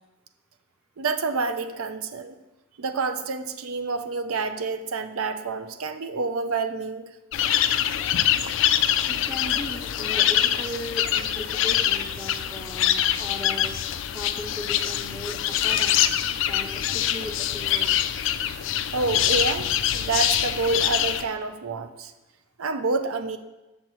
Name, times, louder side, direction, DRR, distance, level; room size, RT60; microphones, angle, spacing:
voice 1, 1.0-2.4 2.8-7.1 18.9-22.1 22.6-23.4, right 4 dB, 90° right, 9 dB, 0.6 m, -28 dB
sound 1, 7.3-21.2, left 11 dB, 60° left, 0.3 m, -24 dB
voice 2, 9.1-13.8 14.1-16.0 16.5-17.9, left 1 dB, 5° right, -1 dB, 0.5 m, -37 dB
7.3 x 7.0 x 3.1 m, 1.1 s
head